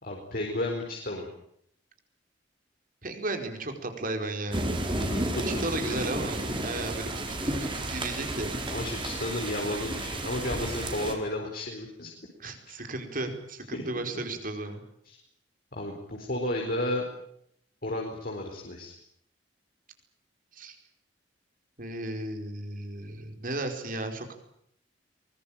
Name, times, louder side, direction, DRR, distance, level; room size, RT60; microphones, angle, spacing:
voice 1, 0.0-1.3 5.0-5.4 5.8-6.0 8.7-12.1 12.7-12.9 13.7-13.8 15.0-15.2 15.7-17.0 17.8-18.9, left 1 dB, 55° left, 1 dB, 4.5 m, -33 dB
voice 2, 3.0-4.8 5.4-7.1 7.9-8.6 12.4-14.8 20.5-20.8 21.8-24.3, right 2 dB, 50° right, 5 dB, 4.9 m, -34 dB
sound 1, 4.5-11.1, right 1 dB, 30° right, 4.7 m, -32 dB
23.5 x 21.0 x 9.0 m, 0.71 s
head